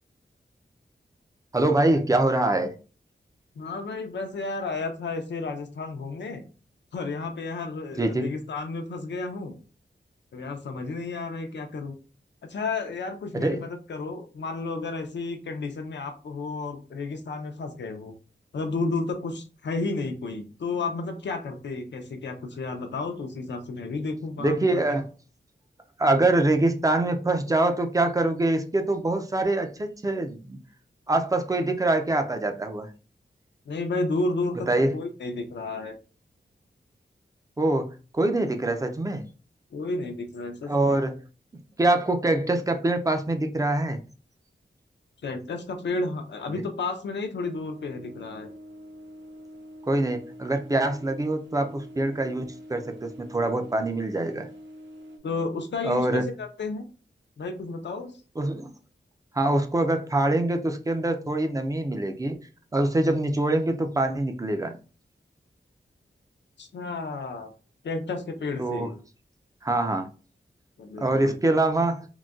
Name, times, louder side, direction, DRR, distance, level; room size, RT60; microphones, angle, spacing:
voice 1, 1.5-2.7 8.0-8.3 13.3-13.6 24.4-25.1 26.0-30.6 31.1-32.9 34.7-34.9 37.6-39.2 40.7-41.1 41.8-44.0 49.9-54.5 55.8-56.2 58.4-58.7 59.3-62.4 62.7-64.7 68.6-68.9 69.6-70.1 71.0-72.1, right 2 dB, 20° right, 0.4 m, -24 dB
voice 2, 3.6-6.4 6.9-9.6 10.3-12.0 12.5-18.2 18.5-25.0 33.7-36.0 39.7-41.0 45.2-48.5 55.2-56.8 57.4-58.1 66.6-67.5 67.8-68.9 70.8-71.4, left 3 dB, 75° left, 0.5 m, -32 dB
sound 1, 47.4-55.2, equal, 80° right, 0.5 m, -45 dB
3.8 x 2.1 x 2.3 m
wide cardioid pair, 110°, 19 cm